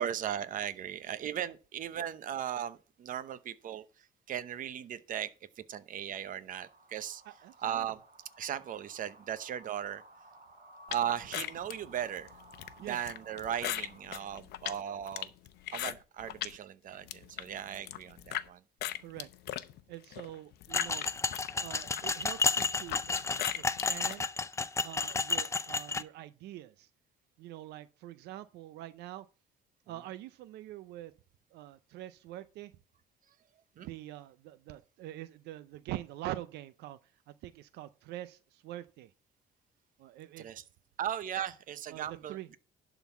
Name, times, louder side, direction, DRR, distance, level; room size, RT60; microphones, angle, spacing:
voice 1, 0.0-3.8 4.3-5.3 5.6-7.2 7.6-8.0 8.4-10.0 10.9-12.3 12.8-15.3 15.7-18.6 33.8-33.9 40.4-40.6 41.0-42.6, right 10 dB, 50° right, 0.8 m, -37 dB
sound 1, 6.5-14.0, right 2 dB, 30° right, 2.9 m, -57 dB
voice 2, 7.2-7.9 12.8-13.0 19.0-19.3 19.9-21.0 21.6-23.3 23.5-24.2 24.8-26.9 27.4-29.3 29.9-31.1 31.5-32.7 33.8-37.0 37.3-39.1 40.0-40.5 41.9-42.5, right 14 dB, 80° right, 0.5 m, -45 dB
sound 2, 10.9-16.6 16.9-18.5 18.8-24.2, left 13 dB, 75° left, 0.7 m, -39 dB
sound 3, 20.7-26.0, left 4 dB, 15° left, 0.5 m, -32 dB
11.5 x 4.0 x 6.9 m
cardioid pair, 110°, 17 cm